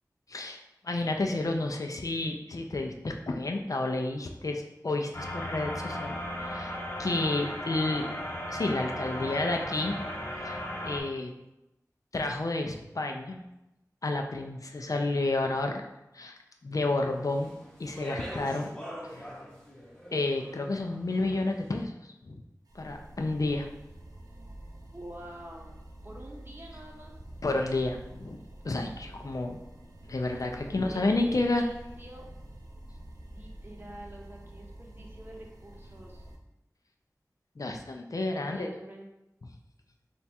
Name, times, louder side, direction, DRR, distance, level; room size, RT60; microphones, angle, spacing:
voice 1, 0.8-6.7 7.0-8.1 8.5-10.0 10.4-10.6 10.8-11.3 12.1-13.4 14.0-15.8 16.1-16.3 16.6-17.5 17.8-18.7 19.0-19.2 20.1-22.0 22.2-22.4 22.7-23.7 27.4-29.6 30.1-31.6 37.6-38.7, left 2 dB, 60° left, 3 dB, 0.4 m, -30 dB
sound 1, 5.1-11.0, left 1 dB, 40° left, 0.7 m, -36 dB
voice 2, 9.0-9.7 24.9-27.1 30.5-32.3 33.3-36.3 38.3-39.1, right 1 dB, 35° right, -1 dB, 0.7 m, -47 dB
Speech, 17.2-21.6, equal, 10° left, 0.8 m, -43 dB
sound 2, 22.7-36.4, right 1 dB, 80° right, 0.5 m, -48 dB
3.4 x 2.3 x 4.1 m, 0.92 s
wide cardioid pair, 60°, 7 cm